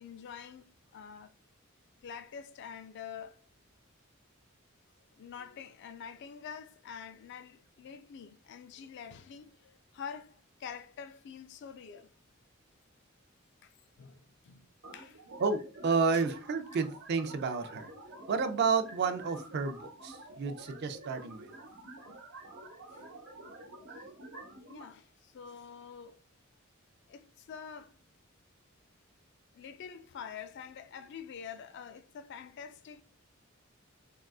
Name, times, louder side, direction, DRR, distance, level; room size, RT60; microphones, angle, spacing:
voice 1, 0.0-1.3 2.0-3.4 5.1-12.1 13.6-14.7 14.9-15.2 22.8-23.2 24.7-26.2 27.1-28.0 29.5-33.0, left 7 dB, 60° left, 0.3 m, -46 dB
sound 1, 14.8-24.8, right 2 dB, 70° right, 0.9 m, -49 dB
voice 2, 15.4-17.9 18.3-21.5, right 5 dB, 55° right, 0.4 m, -31 dB
3.6 x 2.4 x 2.3 m
head